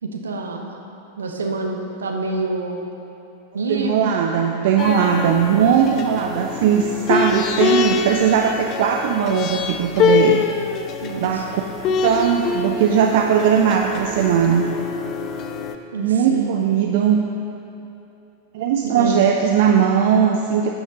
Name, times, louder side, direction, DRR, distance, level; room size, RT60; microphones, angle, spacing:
voice 1, 0.0-0.8 1.2-2.9 3.5-4.2 11.0-11.4 15.9-16.5 18.8-19.2, right 3 dB, 70° right, 3 dB, 1.0 m, -27 dB
voice 2, 3.7-10.4 11.2-11.6 11.9-14.7 16.0-17.2 18.5-20.7, right 8 dB, 50° right, 2 dB, 0.5 m, -19 dB
sound 1, 4.8-15.7, left 5 dB, 35° left, 0.6 m, -24 dB
12.0 x 8.5 x 3.9 m, 2.8 s
figure-of-eight pair, 90°, 0 cm